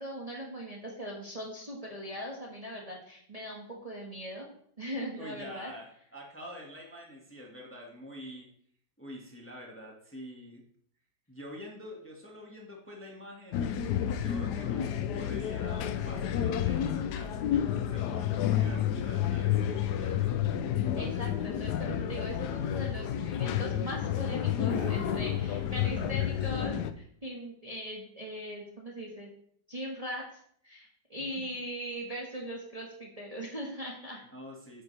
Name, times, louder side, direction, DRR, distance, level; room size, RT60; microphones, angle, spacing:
voice 1, 0.0-4.5 4.8-5.7 20.9-29.3 29.7-30.2 30.6-34.2, equal, 20° right, -3 dB, 1.6 m, -40 dB
voice 2, 5.2-8.5 9.0-10.6 11.3-13.7 14.2-20.4 34.3-34.8, equal, 5° left, -1 dB, 1.6 m, -46 dB
sound 1, 13.5-26.9, left 10 dB, 70° left, 1.1 m, -30 dB
sound 2, 24.7-26.2, right 3 dB, 70° right, 1.8 m, -46 dB
9.9 x 8.8 x 3.4 m, 0.64 s
omnidirectional pair, 2.1 m